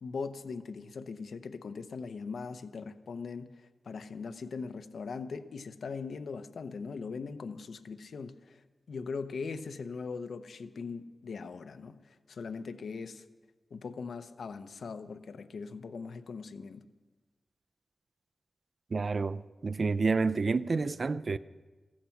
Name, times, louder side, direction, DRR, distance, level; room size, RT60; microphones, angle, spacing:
voice 1, 0.0-8.6 8.9-13.2 13.7-16.8, left 5 dB, 80° left, 0.8 m, -40 dB
voice 2, 18.9-21.4, right 4 dB, 55° right, 0.5 m, -29 dB
15.5 x 15.0 x 5.9 m
wide cardioid pair, 75°, 0 cm